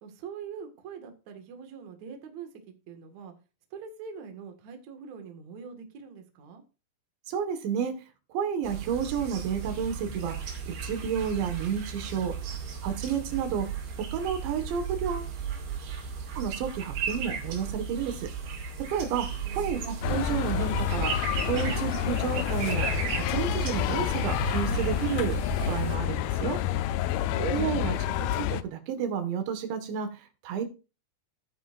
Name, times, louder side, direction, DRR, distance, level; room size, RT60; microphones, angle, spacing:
voice 1, 0.0-2.5 2.9-3.3 3.7-6.6 19.4-20.0 27.2-28.4, right 6 dB, 50° right, 5 dB, 2.6 m, -44 dB
voice 2, 7.3-7.9 8.3-10.4 10.7-12.4 12.8-13.7 14.1-15.3 16.4-18.3 18.9-19.3 19.6-21.1 21.5-22.9 23.1-25.4 25.7-26.6 27.4-28.0 28.4-30.7, right 7 dB, 85° right, 8 dB, 3.9 m, -31 dB
sound 1, 8.6-26.0, right 7 dB, 70° right, 4.3 m, -35 dB
sound 2, 20.0-28.6, left 12 dB, 85° left, 2.1 m, -29 dB
15.0 x 9.1 x 2.6 m, 0.31 s
omnidirectional pair, 5.0 m